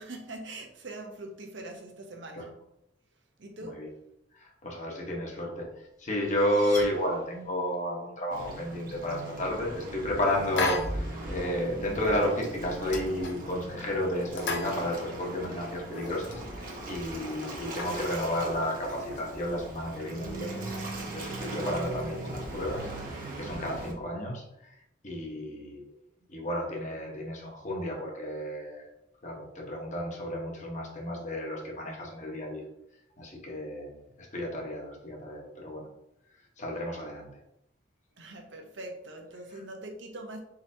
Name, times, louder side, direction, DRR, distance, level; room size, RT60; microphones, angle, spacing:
voice 1, 0.0-2.5 3.4-3.9 38.1-40.4, right 2 dB, 85° right, 2 dB, 0.9 m, -42 dB
voice 2, 4.3-20.7 21.1-22.9 23.4-24.8 25.0-25.9 26.3-28.9 29.2-32.6 33.2-35.9 36.6-37.3, left 1 dB, 40° left, -1 dB, 1.1 m, -32 dB
sound 1, 5.7-7.7, left 2 dB, 20° left, 1.1 m, -46 dB
Waves surf, 8.3-23.9, right 1 dB, 50° right, 1.0 m, -39 dB
sound 2, 10.6-11.2 11.5-11.6 12.0-12.2 12.5-13.7 14.2-15.4 15.7-16.4 16.9-17.0 17.2-18.1 18.7-19.6, left 2 dB, 75° left, 0.7 m, -35 dB
4.3 x 3.9 x 2.7 m, 0.83 s
head